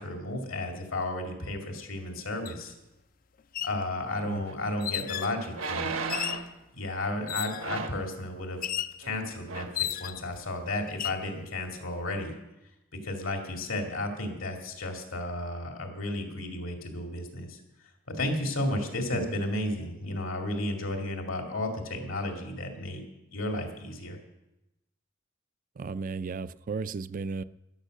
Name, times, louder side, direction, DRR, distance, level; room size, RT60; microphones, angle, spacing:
voice 1, 0.0-2.7 3.6-5.9 6.7-8.6 9.0-12.3 13.0-17.6 18.1-23.0 23.3-24.2, left 1 dB, 75° left, 3 dB, 2.5 m, -33 dB
sound 1, 2.5-2.6 3.4-3.8 4.8-5.4 6.1-6.5 7.3-7.7 8.6-9.0 9.8-10.3 10.9-11.2, left 11 dB, 45° left, 0.4 m, -33 dB
sound 2, 4.5-4.6 5.5-6.5 7.6-8.1 9.0-9.2 9.5-9.8 10.3-10.4, right 4 dB, 80° right, 1.3 m, -34 dB
voice 2, 25.8-27.4, right 4 dB, 40° right, 16 dB, 0.4 m, -34 dB
13.0 x 11.0 x 6.5 m, 0.94 s
head